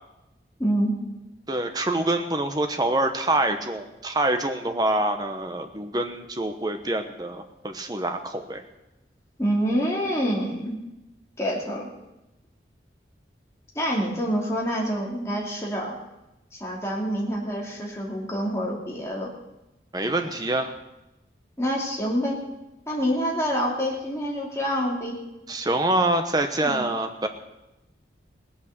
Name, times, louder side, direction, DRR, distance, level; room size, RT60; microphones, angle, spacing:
voice 1, 0.6-0.9 9.4-10.8 11.4-11.9 13.7-16.0 16.6-19.3 21.6-22.5 22.9-25.2 26.6-26.9, equal, 15° left, -3 dB, 3.0 m, -26 dB
voice 2, 1.5-8.6 19.9-20.7 25.5-27.3, right 2 dB, 20° right, 7 dB, 1.0 m, -26 dB
18.5 x 8.5 x 6.9 m, 0.95 s
head